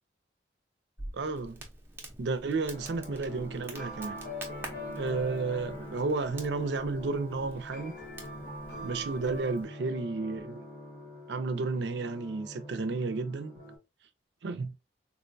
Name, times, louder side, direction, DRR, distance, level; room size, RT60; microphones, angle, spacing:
Crackle, 1.0-9.7, right 1 dB, 10° right, 0.5 m, -47 dB
voice 1, 1.1-1.6 2.2-4.2 4.9-7.9 8.8-10.6 11.3-13.5 14.4-14.7, right 3 dB, 70° right, 0.4 m, -32 dB
sound 1, 2.7-13.8, left 1 dB, 55° left, 0.9 m, -43 dB
3.6 x 2.2 x 2.5 m
head